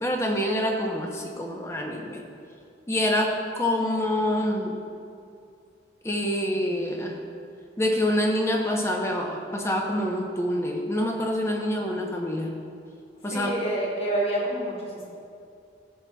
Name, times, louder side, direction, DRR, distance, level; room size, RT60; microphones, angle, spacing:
voice 1, 0.0-2.2 2.9-4.8 6.0-7.2 7.8-12.6 13.2-13.5, left 1 dB, 15° left, 1 dB, 0.7 m, -26 dB
voice 2, 13.3-15.2, right 1 dB, 35° left, -3 dB, 1.2 m, -28 dB
14.5 x 6.0 x 2.3 m, 2.4 s
head